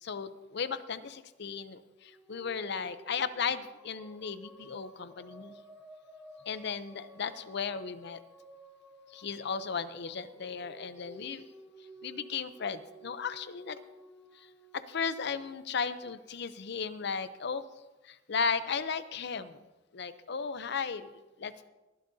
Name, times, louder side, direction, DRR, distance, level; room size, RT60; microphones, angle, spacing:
voice 1, 0.0-5.5 6.5-8.2 9.1-11.5 12.0-13.8 14.3-14.5 14.7-17.6 18.0-19.6 19.9-21.1 21.4-21.7, left 6 dB, 60° left, 13 dB, 0.6 m, -35 dB
sound 1, 2.0-16.4, equal, 5° right, 1.0 m, -54 dB
22.5 x 11.5 x 2.7 m, 1.1 s
head